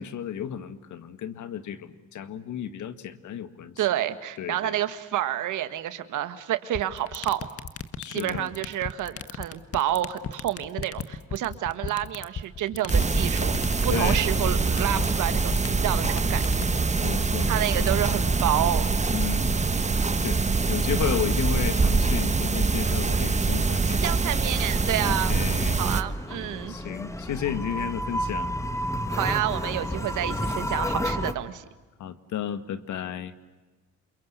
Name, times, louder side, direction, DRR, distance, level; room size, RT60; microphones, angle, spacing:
voice 1, 0.0-3.8 4.4-4.8 8.0-8.5 13.9-14.3 17.0-17.9 19.1-19.7 20.1-20.4 20.7-24.0 25.0-25.8 26.7-28.5 32.0-33.3, left 9 dB, 75° left, 11 dB, 1.9 m, -33 dB
voice 2, 3.8-7.5 8.1-16.6 17.5-18.9 23.8-25.4 25.8-26.7 29.1-31.7, right 12 dB, 85° right, 11 dB, 1.8 m, -29 dB
sound 1, 6.7-18.9, left 6 dB, 50° left, 1.7 m, -35 dB
sound 2, 12.9-26.0, right 4 dB, 25° right, 1.3 m, -24 dB
sound 3, 24.5-31.3, equal, 10° left, 1.8 m, -31 dB
28.0 x 23.0 x 8.2 m, 1.2 s
cardioid pair, 90°, 30 cm